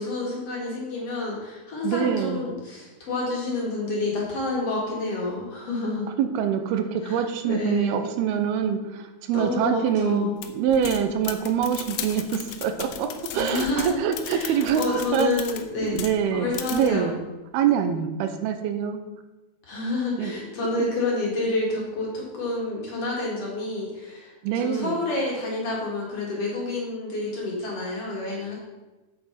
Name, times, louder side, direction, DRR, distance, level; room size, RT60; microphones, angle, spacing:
voice 1, 0.0-6.1 7.0-8.1 9.3-10.4 13.3-14.0 14.3-16.0 16.3-17.1 19.7-28.5, left 2 dB, 45° left, -3 dB, 2.6 m, -29 dB
voice 2, 1.8-2.4 6.2-14.8 15.1-15.4 15.8-17.1 17.5-19.0 20.2-20.3 20.8-20.9 24.4-25.0, right 8 dB, 85° right, 8 dB, 2.7 m, -25 dB
sound 1, 10.4-16.2 16.5-16.9, left 10 dB, 75° left, 2.3 m, -36 dB
8.5 x 7.7 x 5.7 m, 1.1 s
omnidirectional pair, 4.5 m